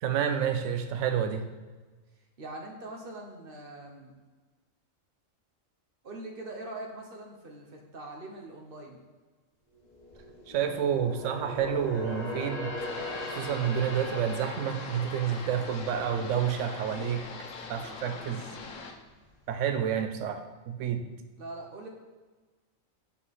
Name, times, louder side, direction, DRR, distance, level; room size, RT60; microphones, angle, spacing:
voice 1, 0.0-1.5 10.5-12.8 13.3-17.2 17.7-18.5 19.5-21.0, right 8 dB, 70° right, 7 dB, 0.9 m, -29 dB
voice 2, 2.4-4.1 6.0-9.0 21.4-21.9, right 2 dB, 45° right, 1 dB, 1.1 m, -42 dB
sound 1, 9.8-17.3 17.7-17.9 18.4-19.2 19.5-19.6, left 2 dB, 35° left, 1.3 m, -40 dB
sound 2, 12.8-18.9, left 4 dB, 80° left, 1.2 m, -42 dB
5.5 x 4.7 x 4.1 m, 1.3 s
omnidirectional pair, 1.4 m